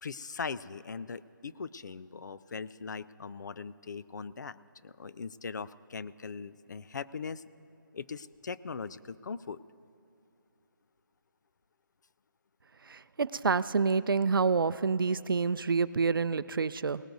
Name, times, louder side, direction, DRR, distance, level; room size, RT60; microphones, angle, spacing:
voice 1, 0.0-4.6 4.8-7.4 7.9-9.6, left 5 dB, 60° left, 16 dB, 0.4 m, -40 dB
voice 2, 12.9-17.0, right 5 dB, 85° right, 15 dB, 0.5 m, -28 dB
18.5 x 18.5 x 2.7 m, 2.7 s
hypercardioid pair, 170°, 11 cm